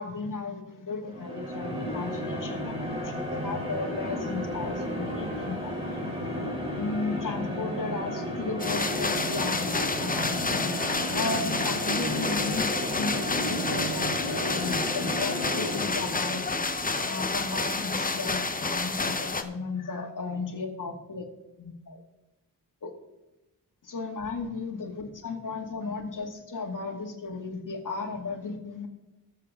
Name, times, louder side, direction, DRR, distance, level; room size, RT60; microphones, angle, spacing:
voice 1, 0.0-6.1 6.8-10.7 11.1-16.4 17.0-21.3 21.6-22.0 22.8-22.9 23.9-28.9, left 4 dB, 50° left, 1 dB, 2.1 m, -35 dB
sound 1, 1.1-16.4, equal, 15° right, 3.6 m, -33 dB
sound 2, 8.6-19.4, left 3 dB, 20° left, 0.9 m, -29 dB
20.5 x 6.9 x 3.7 m, 0.98 s
wide cardioid pair, 85°, 39 cm